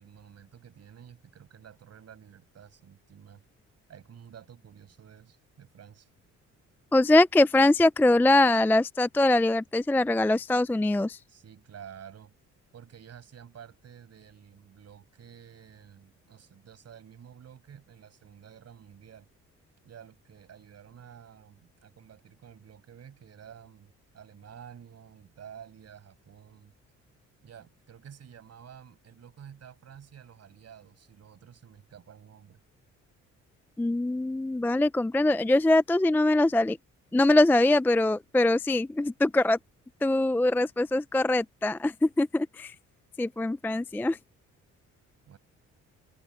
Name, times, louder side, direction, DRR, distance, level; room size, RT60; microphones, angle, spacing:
voice 1, 0.0-3.4 3.9-6.1 11.3-12.3 12.7-19.3 19.8-26.7 27.4-32.6 45.3-45.4, right 8 dB, 55° right, 6.4 m, -50 dB
voice 2, 6.9-11.2 33.8-36.8 37.1-39.6 40.0-42.7 43.2-44.2, left 2 dB, 5° left, 0.4 m, -23 dB
open air
cardioid pair, 90°, 30 cm